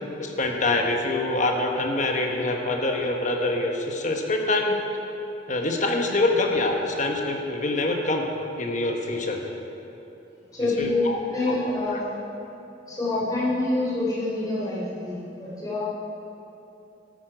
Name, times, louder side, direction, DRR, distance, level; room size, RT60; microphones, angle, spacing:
voice 1, 0.2-4.8 5.5-8.3 8.6-9.4 10.8-11.2 11.5-11.6, left 2 dB, 40° left, 2 dB, 1.2 m, -25 dB
voice 2, 10.5-12.1 12.9-15.8, left 2 dB, 20° left, -8 dB, 3.1 m, -26 dB
12.5 x 9.1 x 5.0 m, 3.0 s
head